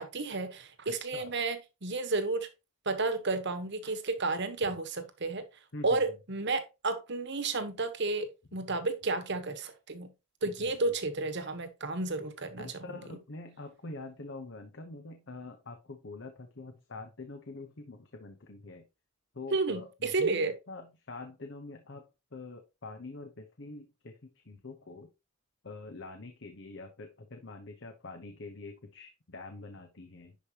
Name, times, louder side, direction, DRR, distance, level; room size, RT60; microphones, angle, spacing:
voice 1, 0.0-2.5 2.8-5.4 5.8-10.1 10.4-12.7 19.5-20.5, right 3 dB, 55° right, 1.2 m, -32 dB
voice 2, 10.6-10.9 12.6-18.9 19.3-25.1 25.6-30.4, left 2 dB, 60° left, 1.0 m, -45 dB
10.5 x 5.0 x 3.0 m
head